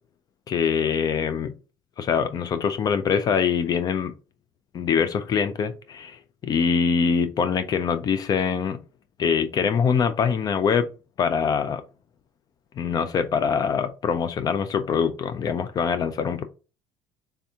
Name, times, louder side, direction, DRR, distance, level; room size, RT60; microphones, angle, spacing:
voice 1, 0.5-1.5 2.0-4.1 4.7-8.8 9.2-10.9 11.2-11.8 12.8-16.4, left 6 dB, 40° left, 0.4 m, -24 dB
3.4 x 2.7 x 3.5 m
supercardioid pair, 95°, 10 cm